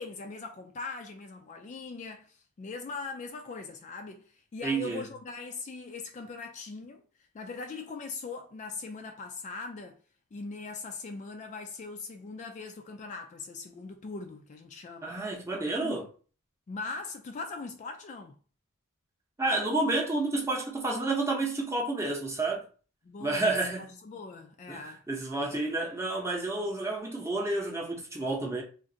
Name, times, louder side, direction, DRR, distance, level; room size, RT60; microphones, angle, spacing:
voice 1, 0.0-7.0 7.3-10.0 10.3-15.1 15.8-16.1 16.7-18.3 23.0-25.0, left 4 dB, 35° left, 0.3 m, -40 dB
voice 2, 4.6-5.1 15.0-16.0 19.4-22.6 23.2-24.0 24.7-28.6, right 2 dB, 15° right, 0.7 m, -30 dB
2.5 x 2.5 x 3.8 m
head